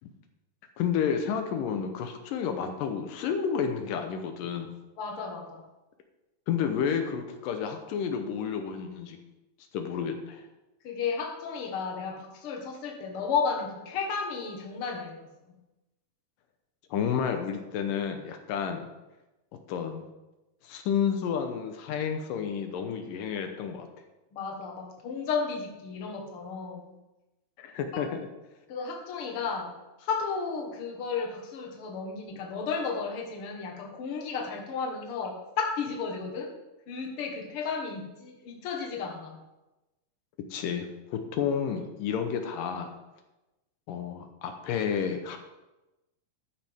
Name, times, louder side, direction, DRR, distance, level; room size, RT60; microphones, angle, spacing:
voice 1, 0.8-4.7 6.5-9.2 9.7-10.4 16.9-18.9 19.7-20.0 20.6-23.9 27.6-28.3 40.5-42.9 43.9-45.4, left 7 dB, 85° left, 6 dB, 2.6 m, -30 dB
voice 2, 5.0-5.6 10.8-15.3 24.3-26.9 27.9-28.0 28.7-36.5 36.9-39.4, left 5 dB, 50° left, 1 dB, 2.1 m, -33 dB
12.0 x 9.6 x 3.6 m, 1.0 s
omnidirectional pair, 3.8 m